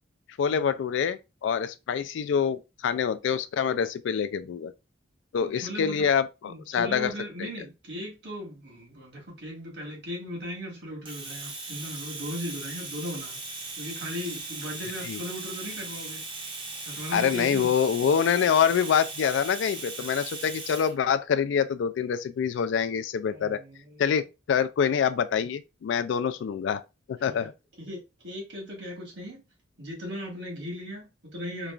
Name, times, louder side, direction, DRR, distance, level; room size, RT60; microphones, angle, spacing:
voice 1, 0.4-4.7 5.3-7.1 7.4-7.5 15.0-15.2 17.1-23.6 24.0-26.8 27.1-27.5, left 7 dB, 75° left, 0.3 m, -26 dB
voice 2, 5.4-6.1 6.4-17.7 20.0-20.2 23.3-24.1 27.2-27.5 27.8-29.4 29.8-31.7, equal, 65° right, 1.4 m, -38 dB
Domestic sounds home sounds, 11.1-20.9, right 3 dB, 25° right, 0.6 m, -38 dB
3.0 x 2.4 x 2.3 m
head